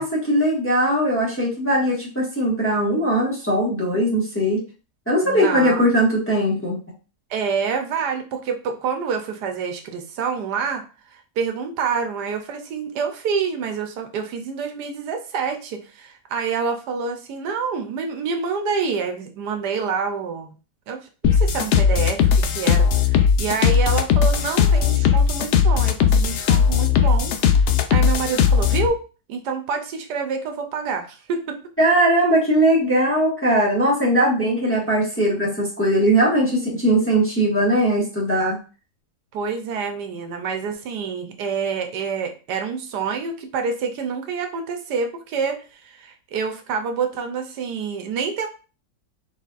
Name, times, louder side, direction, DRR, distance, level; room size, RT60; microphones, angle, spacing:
voice 1, 0.0-4.6 5.1-6.8 31.8-38.6, right 1 dB, 10° left, -5 dB, 1.2 m, -20 dB
voice 2, 5.2-5.9 7.3-20.5 20.9-21.0 21.3-29.0 29.3-31.6 39.3-48.5, right 5 dB, 80° right, 5 dB, 1.3 m, -27 dB
sound 1, 21.2-28.9, left 7 dB, 80° left, 0.6 m, -18 dB
4.2 x 4.1 x 2.4 m, 0.34 s
omnidirectional pair, 1.8 m